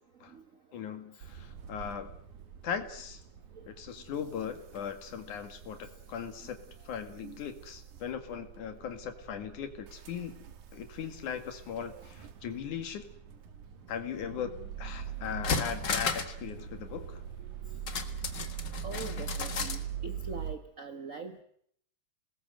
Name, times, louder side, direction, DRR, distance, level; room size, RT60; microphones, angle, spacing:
voice 1, 0.7-2.1 2.6-3.2 3.7-6.6 6.9-10.4 10.7-13.1 13.9-14.5 14.8-17.2, left 8 dB, 90° left, 7 dB, 3.5 m, -39 dB
sound 1, 1.2-20.5, right 8 dB, 90° right, 3.0 m, -43 dB
voice 2, 7.2-7.6 18.8-21.4, right 4 dB, 45° right, 7 dB, 1.1 m, -43 dB
sound 2, 14.8-14.9 15.3-16.4 16.7-16.8 17.9-19.8 20.2-20.3, left 5 dB, 40° left, 2.0 m, -33 dB
27.0 x 19.5 x 7.8 m, 0.67 s
omnidirectional pair, 3.4 m